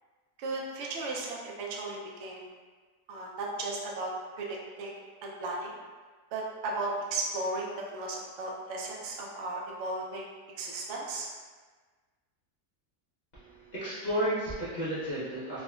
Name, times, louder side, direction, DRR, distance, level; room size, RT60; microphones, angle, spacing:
voice 1, 0.4-2.5 3.1-4.1 4.4-5.7 6.3-10.3 10.6-11.3, right 2 dB, 70° right, -2 dB, 0.7 m, -35 dB
voice 2, 13.3-15.6, right 1 dB, 90° left, -11 dB, 0.3 m, -33 dB
3.4 x 2.1 x 2.3 m, 1.4 s
omnidirectional pair, 1.7 m